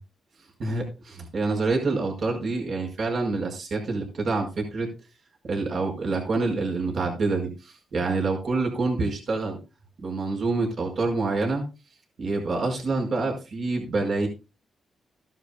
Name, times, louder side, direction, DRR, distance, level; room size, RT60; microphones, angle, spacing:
voice 1, 0.6-4.9 5.5-9.6 10.0-11.6 12.2-14.3, right 3 dB, 55° right, 1 dB, 5.0 m, -27 dB
15.0 x 11.5 x 2.2 m, 0.28 s
cardioid pair, 90°, 0 cm